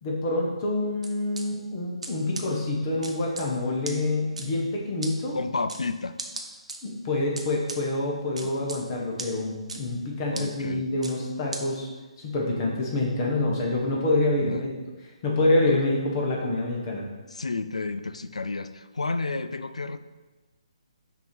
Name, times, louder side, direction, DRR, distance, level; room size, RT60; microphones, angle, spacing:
voice 1, 0.0-5.4 6.8-11.9 12.2-14.7 15.2-17.0, left 2 dB, 35° left, -1 dB, 1.2 m, -26 dB
sound 1, 1.0-1.4 2.0-2.1 2.3-2.4 3.0-3.4 3.8-3.9 4.4-4.5 5.0-5.1 5.7-5.8 6.2-6.8 7.4-7.8 8.4-8.8 9.2-9.3 9.7-9.8 10.3-10.4 11.0-11.1 11.5-11.6, right 3 dB, 75° right, 0.8 m, -35 dB
voice 2, 5.3-6.2 8.4-8.5 10.3-10.9 14.4-14.6 14.9-15.0 15.7-15.8 17.3-20.0, left 3 dB, 75° left, 12 dB, 0.4 m, -31 dB
6.0 x 3.0 x 5.3 m, 1.2 s
figure-of-eight pair, 140°, 4 cm